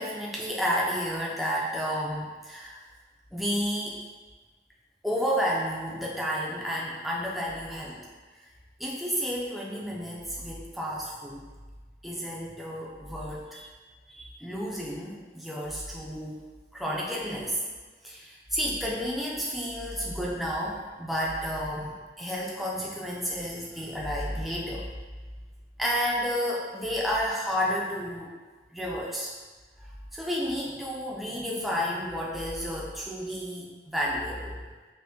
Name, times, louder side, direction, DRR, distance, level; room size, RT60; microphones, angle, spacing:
voice 1, 0.0-2.8 3.3-4.0 5.0-8.0 8.8-11.4 12.0-13.7 14.1-16.4 16.7-17.6 18.0-24.9 25.8-28.3 28.7-29.3 29.8-34.6, equal, ahead, -5 dB, 0.4 m, -31 dB
5.4 x 2.1 x 2.7 m, 1.3 s
head